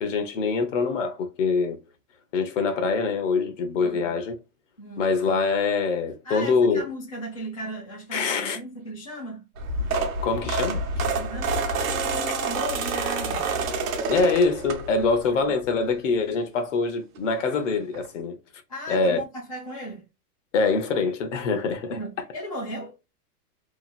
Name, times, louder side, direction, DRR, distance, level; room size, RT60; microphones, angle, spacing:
voice 1, 0.0-1.8 2.3-4.3 5.0-6.8 8.1-8.6 10.2-10.8 14.1-18.4 18.9-19.2 20.5-22.0, left 4 dB, 50° left, 0.8 m, -24 dB
voice 2, 3.8-4.2 4.8-5.2 6.2-9.4 11.2-13.5 15.0-15.5 18.7-20.1 21.9-23.0, equal, 25° left, 0.3 m, -36 dB
sound 1, 9.6-15.2 15.7-15.9 17.2-17.3 17.5-17.6 17.9-18.1, right 3 dB, 60° right, 0.8 m, -28 dB
2.9 x 2.3 x 2.4 m
supercardioid pair, 175°, 46 cm